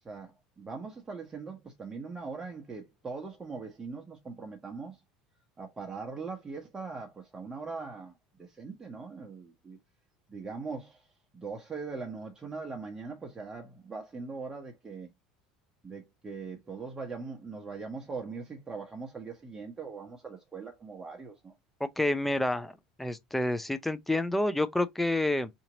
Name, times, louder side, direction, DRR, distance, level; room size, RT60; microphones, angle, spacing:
voice 1, 0.0-5.0 5.6-9.8 10.3-11.0 11.3-15.1 15.8-21.5, right 4 dB, 20° right, 1.0 m, -41 dB
voice 2, 21.8-25.5, left 1 dB, 5° left, 0.5 m, -29 dB
2.9 x 2.8 x 3.9 m
hypercardioid pair, 80°, 3 cm